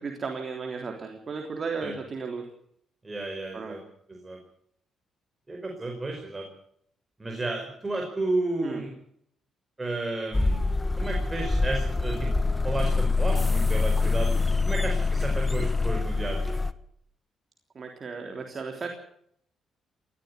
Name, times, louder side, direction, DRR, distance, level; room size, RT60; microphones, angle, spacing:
voice 1, 0.0-2.4 3.5-3.8 8.6-8.8 17.7-18.9, right 4 dB, 40° right, 3 dB, 3.4 m, -34 dB
voice 2, 3.0-3.8 4.1-4.4 5.5-6.4 7.2-8.9 9.8-10.7 10.9-12.3 12.6-14.3 14.6-16.6, right 2 dB, 20° right, 2 dB, 5.1 m, -32 dB
sound 1, 10.3-16.7, left 3 dB, 15° left, 1.2 m, -25 dB
19.0 x 14.0 x 9.7 m, 0.69 s
cardioid pair, 90°, 0 cm